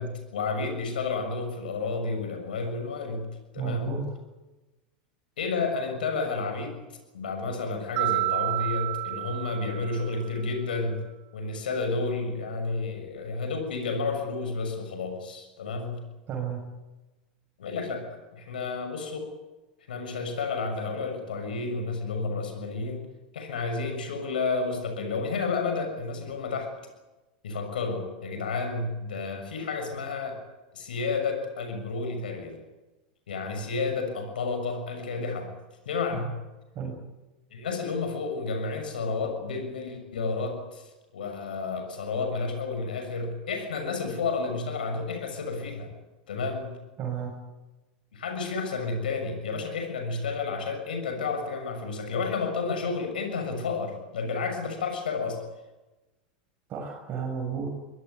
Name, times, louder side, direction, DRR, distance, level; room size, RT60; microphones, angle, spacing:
voice 1, 0.0-3.3 3.5-4.0 5.4-6.8 7.1-11.0 11.3-16.0 17.6-19.3 19.9-23.0 23.3-26.7 27.4-30.4 30.7-32.6 33.3-35.5 35.8-36.3 37.5-45.9 46.3-46.8 48.1-55.4, left 4 dB, 80° left, 5 dB, 6.7 m, -31 dB
voice 2, 3.6-4.1 16.3-16.6 36.1-36.2 36.8-37.0 47.0-47.3 56.7-57.7, right 7 dB, 40° right, 0 dB, 7.0 m, -32 dB
Mallet percussion, 8.0-10.3, right 21 dB, 60° right, 2.8 m, -30 dB
24.0 x 19.5 x 9.6 m, 1.1 s
hypercardioid pair, 100°, 5 cm